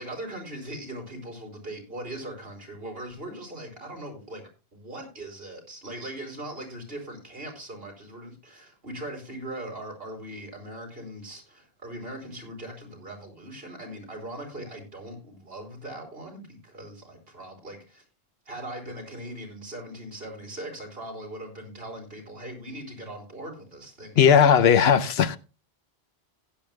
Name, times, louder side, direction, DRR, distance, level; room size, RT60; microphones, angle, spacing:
voice 1, 0.0-18.0 18.5-24.6, right 1 dB, 65° right, 4.1 m, -40 dB
voice 2, 24.2-25.4, left 8 dB, 75° left, 0.9 m, -17 dB
16.0 x 10.5 x 2.2 m
omnidirectional pair, 1.1 m